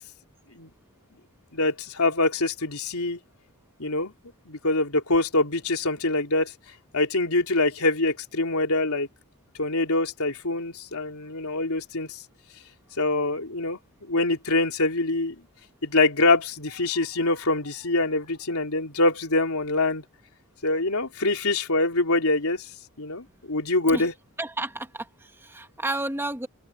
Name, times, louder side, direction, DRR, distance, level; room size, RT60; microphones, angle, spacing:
voice 1, 1.5-3.2 3.8-4.1 4.4-6.5 6.9-9.1 9.6-12.2 13.0-15.3 15.8-20.0 20.6-22.7 23.0-24.1, left 2 dB, 85° left, 3.4 m, -24 dB
voice 2, 24.4-26.5, right 2 dB, 10° right, 1.8 m, -31 dB
open air
head